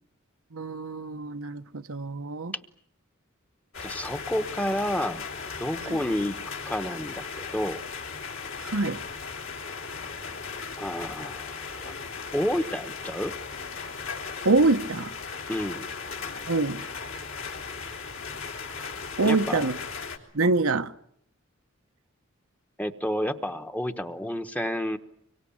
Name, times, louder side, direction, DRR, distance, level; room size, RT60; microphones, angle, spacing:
voice 1, 0.5-2.5 5.8-6.0 8.6-9.0 14.4-15.1 16.5-16.8 19.2-19.8 20.3-20.9, right 3 dB, 80° right, 1.0 m, -25 dB
sound 1, 3.7-20.2, left 5 dB, 65° left, 3.4 m, -37 dB
voice 2, 3.8-5.3 5.6-7.8 10.8-11.6 11.8-11.9 12.3-13.3 15.5-15.9 19.2-19.7 22.8-25.0, equal, 5° left, 1.0 m, -30 dB
25.0 x 23.5 x 8.6 m
head